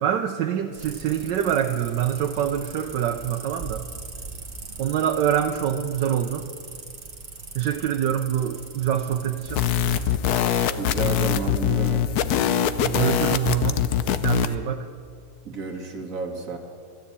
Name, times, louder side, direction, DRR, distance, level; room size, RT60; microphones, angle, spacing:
voice 1, 0.0-3.8 4.8-6.5 7.5-9.6 12.8-13.8 14.2-14.9, right 10 dB, 90° right, 4 dB, 1.3 m, -25 dB
sound 1, 0.7-10.2, right 3 dB, 30° right, 1.7 m, -40 dB
sound 2, 9.5-14.5, left 9 dB, 70° left, 1.2 m, -23 dB
voice 2, 10.7-12.2 15.5-16.6, right 4 dB, 50° right, 3 dB, 2.0 m, -31 dB
13.0 x 13.0 x 8.2 m, 2.1 s
omnidirectional pair, 1.8 m